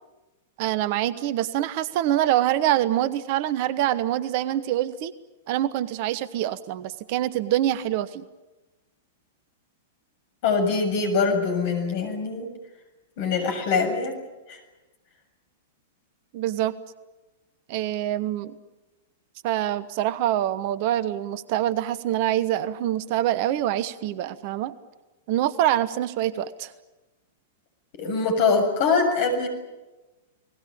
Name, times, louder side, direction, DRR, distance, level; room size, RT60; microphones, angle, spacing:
voice 1, 0.6-5.1 5.5-8.2 16.3-16.7 17.7-18.5 19.4-24.7 25.3-26.7, right 12 dB, 45° right, 17 dB, 1.1 m, -25 dB
voice 2, 10.4-12.5 13.2-14.2 14.5-14.6 27.9-29.5, left 4 dB, 45° left, 6 dB, 7.1 m, -23 dB
30.0 x 20.0 x 8.8 m, 1.1 s
figure-of-eight pair, 100°, 0 cm